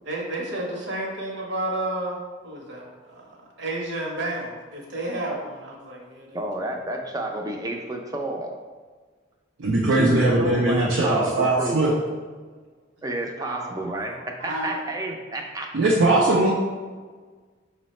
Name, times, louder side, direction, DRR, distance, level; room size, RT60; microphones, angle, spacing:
voice 1, 0.0-6.4 13.0-14.8, right 1 dB, 65° right, -1 dB, 0.9 m, -32 dB
voice 2, 6.3-8.5 9.9-11.8 13.0-15.7, right 1 dB, 20° right, 2 dB, 0.4 m, -30 dB
voice 3, 9.6-12.0 15.7-16.5, right 2 dB, 85° right, -3 dB, 0.5 m, -20 dB
5.5 x 2.1 x 4.1 m, 1.4 s
head